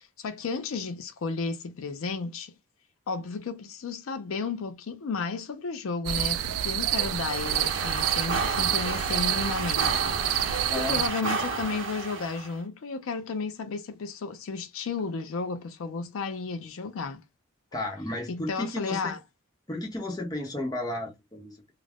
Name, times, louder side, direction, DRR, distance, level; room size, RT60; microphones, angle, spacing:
voice 1, 0.2-2.5 3.1-10.2 10.8-17.2 18.3-19.2, left 4 dB, 80° left, 0.4 m, -33 dB
sound 1, 6.1-11.1, right 11 dB, 90° right, 0.3 m, -28 dB
sound 2, 6.8-12.5, right 4 dB, 65° right, 0.7 m, -32 dB
voice 2, 10.7-11.3 17.7-19.1 19.7-21.7, left 1 dB, 20° left, 0.7 m, -33 dB
2.4 x 2.0 x 3.3 m
head